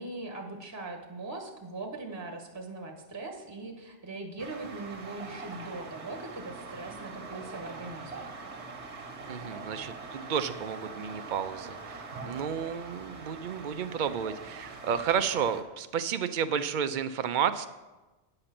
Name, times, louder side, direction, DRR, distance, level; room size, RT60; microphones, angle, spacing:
voice 1, 0.0-8.3, right 2 dB, 15° right, 2 dB, 1.0 m, -40 dB
sound 1, 4.4-15.6, right 4 dB, 75° right, 1.4 m, -43 dB
voice 2, 9.3-17.7, right 7 dB, 55° right, 10 dB, 0.6 m, -31 dB
9.7 x 6.6 x 5.9 m, 1.1 s
omnidirectional pair, 1.2 m